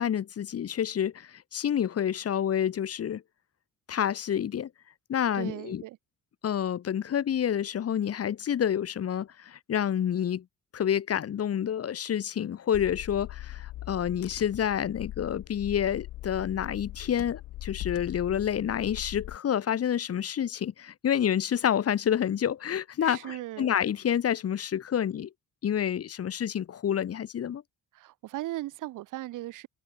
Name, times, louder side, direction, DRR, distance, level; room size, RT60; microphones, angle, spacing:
voice 1, 0.0-3.2 3.9-4.7 5.1-5.8 6.4-10.4 10.7-25.3 25.6-27.6, left 9 dB, 50° left, 1.4 m, -28 dB
voice 2, 5.3-6.0 23.0-23.7 27.9-29.7, right 16 dB, 90° right, 2.0 m, -37 dB
Car / Engine, 12.7-19.4, left 15 dB, 85° left, 3.6 m, -41 dB
open air
cardioid pair, 90°, 30 cm